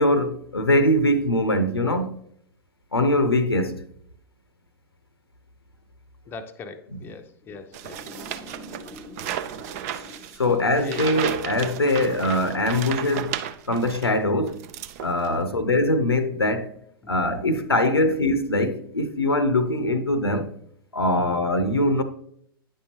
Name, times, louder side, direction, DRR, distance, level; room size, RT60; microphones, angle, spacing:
voice 1, 0.0-2.1 2.9-3.8 10.4-13.4 13.7-14.6 15.0-16.7 17.1-20.5 20.9-22.0, left 1 dB, 80° left, 0.7 m, -22 dB
voice 2, 6.3-11.1 11.9-12.3 15.3-15.6 17.0-17.6 18.0-18.2 21.2-21.4, left 4 dB, 15° left, 0.6 m, -41 dB
sound 1, 7.7-14.1 14.5-15.4, right 11 dB, 40° right, 0.5 m, -34 dB
9.6 x 5.5 x 2.8 m
figure-of-eight pair, 100°, 13 cm